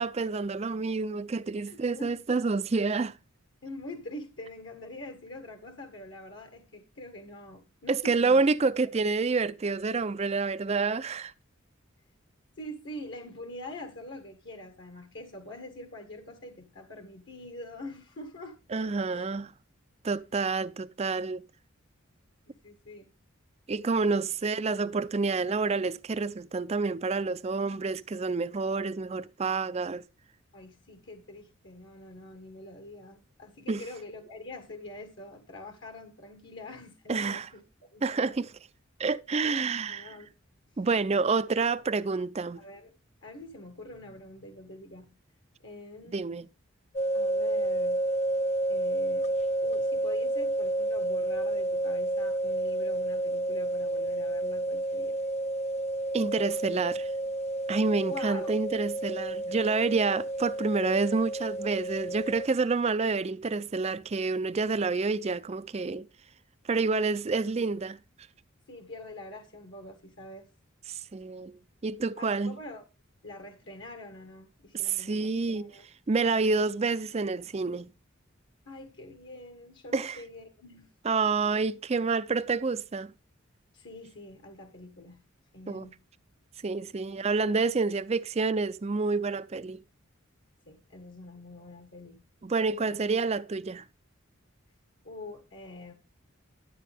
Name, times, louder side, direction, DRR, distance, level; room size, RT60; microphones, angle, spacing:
voice 1, 0.0-3.1 7.9-11.3 18.7-19.5 20.0-21.4 23.7-30.0 33.7-33.8 37.1-37.5 38.0-38.5 39.0-40.1 40.8-42.6 46.1-46.5 56.1-57.1 57.7-66.1 66.7-68.0 71.1-72.5 74.8-75.7 76.1-77.9 79.9-80.2 81.0-83.1 85.7-85.9 86.6-89.8 92.4-93.8, right 4 dB, 30° right, 0.4 m, -28 dB
voice 2, 1.6-2.1 3.6-8.4 8.8-8.9 12.6-18.6 19.1-19.2 21.1-21.2 22.6-23.1 24.0-24.2 30.5-38.3 39.4-40.3 40.7-40.9 42.5-42.9 43.2-45.1 45.6-46.2 47.1-48.0 48.7-49.3 49.6-55.2 58.0-58.6 67.3-67.4 68.7-70.5 72.2-72.8 73.2-75.9 78.6-80.9 83.7-85.2 85.5-86.0 87.1-87.2 90.7-92.2 92.9-93.0 95.0-95.9, left 1 dB, 60° left, 1.6 m, -45 dB
sound 1, 47.0-62.5, right 1 dB, 30° left, 0.5 m, -30 dB
12.0 x 8.3 x 3.4 m
head